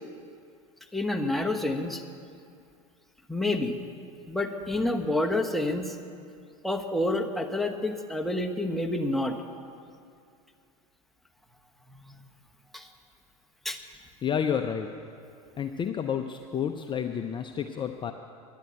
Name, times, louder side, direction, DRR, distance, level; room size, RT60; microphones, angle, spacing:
voice 1, 0.9-2.0 3.3-3.8 4.3-6.0 6.6-9.4 12.7-12.9 13.6-13.8, left 1 dB, ahead, 2 dB, 1.1 m, -28 dB
voice 2, 14.2-14.9 15.6-18.1, left 8 dB, 25° left, 6 dB, 0.6 m, -30 dB
10.5 x 10.5 x 8.0 m, 2.4 s
hypercardioid pair, 90°, 19 cm